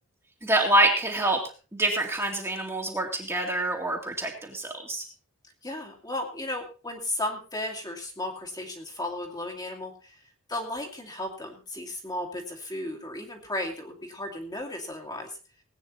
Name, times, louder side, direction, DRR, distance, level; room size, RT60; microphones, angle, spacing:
voice 1, 0.4-1.4 1.7-5.0, right 1 dB, 10° right, 0 dB, 2.4 m, -26 dB
voice 2, 5.6-10.2 10.5-15.4, left 1 dB, 20° left, 1 dB, 2.4 m, -35 dB
19.0 x 9.2 x 4.2 m, 0.35 s
head